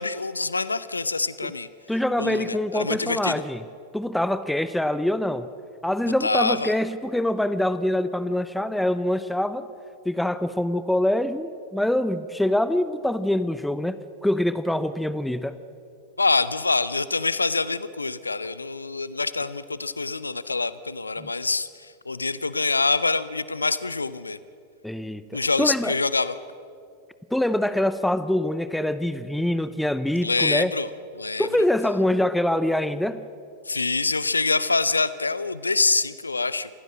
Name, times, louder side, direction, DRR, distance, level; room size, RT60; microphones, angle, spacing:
voice 1, 0.0-1.7 2.2-3.4 6.2-6.7 16.2-24.4 25.3-26.4 30.2-30.9 31.2-31.5 33.7-36.7, left 3 dB, 80° left, 16 dB, 0.6 m, -25 dB
voice 2, 1.9-3.6 3.9-5.5 5.8-9.7 10.0-15.6 21.2-21.3 24.8-26.0 27.3-30.7 31.4-33.2, left 1 dB, 5° left, 13 dB, 0.7 m, -24 dB
27.0 x 16.0 x 7.6 m, 2.5 s
figure-of-eight pair, 90°, 0 cm